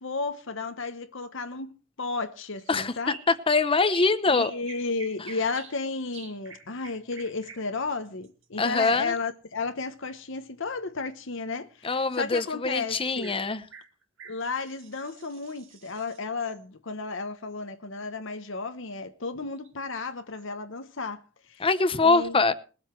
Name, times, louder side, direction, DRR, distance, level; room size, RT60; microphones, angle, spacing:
voice 1, 0.0-1.7 2.0-3.2 4.3-13.4 14.2-21.2 21.5-21.7 22.0-22.5, left 4 dB, 65° left, 1.1 m, -33 dB
sound 1, 2.5-2.7 3.0-5.8 6.1-9.3 12.7-12.8 13.2-13.4 13.7-16.6 19.6-19.7 20.3-20.5, right 5 dB, 65° right, 2.6 m, -47 dB
voice 2, 2.7-4.5 8.6-9.1 11.8-13.6 21.6-22.5, left 3 dB, 25° left, 0.9 m, -24 dB
21.0 x 7.9 x 4.6 m
head